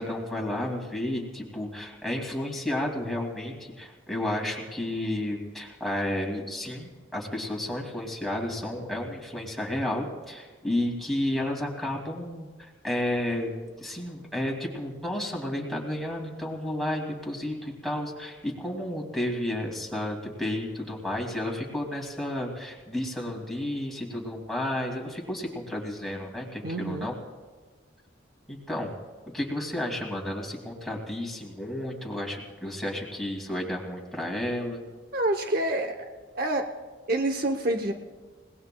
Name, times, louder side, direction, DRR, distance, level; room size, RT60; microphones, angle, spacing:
voice 1, 0.0-13.5 13.8-27.2 28.5-28.9 29.3-34.8, left 1 dB, ahead, -1 dB, 2.4 m, -32 dB
voice 2, 26.6-27.1 35.1-36.0 36.3-36.7 37.1-37.9, right 1 dB, 50° right, 6 dB, 0.8 m, -27 dB
30.0 x 18.5 x 2.3 m, 1.4 s
head